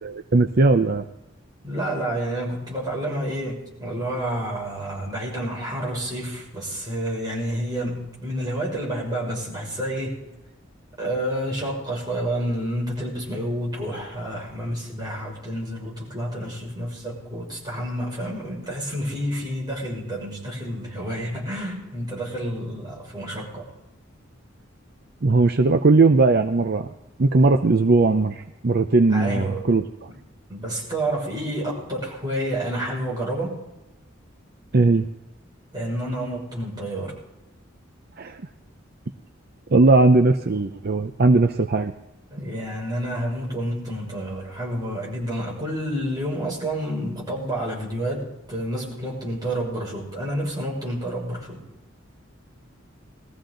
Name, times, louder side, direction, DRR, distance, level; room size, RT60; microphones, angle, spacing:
voice 1, 0.0-1.0 25.2-26.9 27.2-29.8 34.7-35.1 38.2-38.4 39.7-41.9, right 3 dB, 50° right, 6 dB, 0.6 m, -18 dB
voice 2, 1.6-10.2 11.0-23.7 29.1-29.7 30.1-30.2 30.5-33.6 35.7-37.1 42.3-51.6, right 1 dB, 20° right, -4 dB, 6.1 m, -29 dB
21.5 x 14.5 x 3.9 m, 0.98 s
head